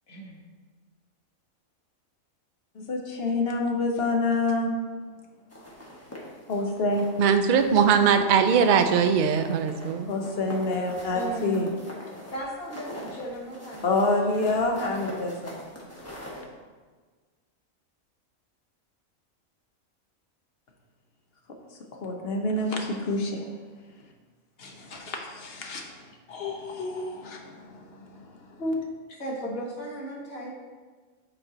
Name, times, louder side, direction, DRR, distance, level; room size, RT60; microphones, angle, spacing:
voice 1, 0.1-0.4 11.1-11.6 12.3-14.2 29.1-30.6, right 1 dB, 85° left, -3 dB, 1.8 m, -36 dB
voice 2, 2.8-4.7 6.5-7.0 10.1-11.7 13.8-15.5 22.0-23.4 24.6-25.8 26.3-27.7 28.6-28.8, left 2 dB, 50° left, 2 dB, 1.0 m, -27 dB
sound 1, 5.5-7.2 7.6-8.2 8.5-16.4, equal, 10° left, 1.1 m, -42 dB
voice 3, 7.2-10.1, right 6 dB, 70° right, 7 dB, 0.4 m, -21 dB
7.9 x 4.4 x 3.9 m, 1.4 s
omnidirectional pair, 1.4 m